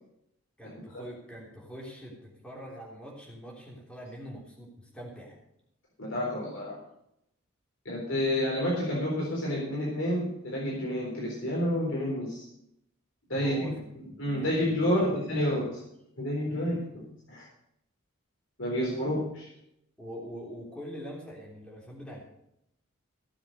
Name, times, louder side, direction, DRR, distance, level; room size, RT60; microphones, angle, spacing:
voice 1, 0.6-5.4 13.3-15.2 16.5-16.9 18.9-19.1 20.0-22.2, equal, 5° left, -3 dB, 3.3 m, -44 dB
voice 2, 6.0-6.8 7.8-12.4 13.3-13.7 14.2-15.8 16.2-16.8 17.3-17.5 18.6-19.5, equal, 65° left, -4 dB, 4.0 m, -29 dB
16.5 x 7.4 x 6.6 m, 0.77 s
head